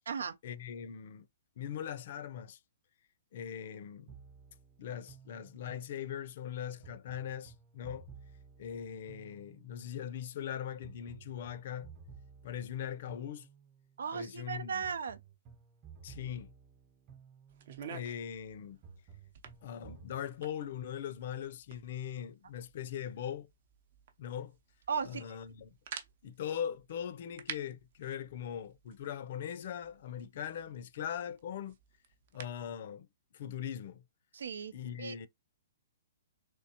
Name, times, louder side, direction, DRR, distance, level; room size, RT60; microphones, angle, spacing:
voice 1, 0.4-1.3 1.6-2.6 3.3-4.2 4.8-8.1 8.6-11.9 12.4-13.5 14.1-14.8 16.0-16.5 17.9-18.8 19.6-23.5 24.2-24.6 25.0-25.8 26.2-31.8 32.3-33.1 33.3-34.0 34.7-35.3, left 9 dB, 50° left, 0.5 m, -40 dB
sound 1, 4.1-6.0 6.8-9.9 10.8-13.9 14.8-17.9 18.8-20.2, right 6 dB, 25° right, 0.9 m, -55 dB
voice 2, 14.0-15.2 24.9-25.2 34.3-34.7 35.0-35.3, right 6 dB, 90° right, 0.5 m, -36 dB
sound 2, 17.5-32.7, right 8 dB, 50° right, 0.7 m, -52 dB
3.5 x 3.3 x 2.9 m
hypercardioid pair, 165°, 0 cm